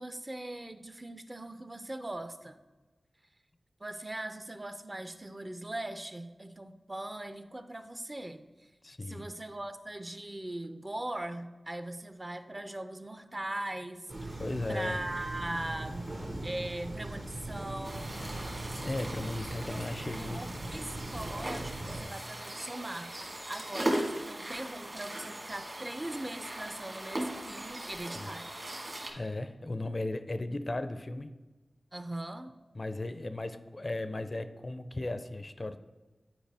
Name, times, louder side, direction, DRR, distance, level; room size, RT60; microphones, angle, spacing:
voice 1, 0.0-2.6 3.8-8.4 9.1-14.4 14.7-16.1 16.4-18.4 19.7-28.5 31.9-32.5, right 1 dB, 25° right, 10 dB, 0.5 m, -40 dB
voice 2, 8.8-9.2 14.4-15.0 18.7-20.4 28.1-28.3 29.1-31.3 32.7-35.8, left 2 dB, 40° left, 10 dB, 0.4 m, -36 dB
sound 1, 14.1-22.0, right 2 dB, 70° right, 1.6 m, -40 dB
sound 2, 17.8-29.1, right 1 dB, 45° right, 1.4 m, -39 dB
9.0 x 4.6 x 3.4 m, 1.2 s
wide cardioid pair, 55°, 0 cm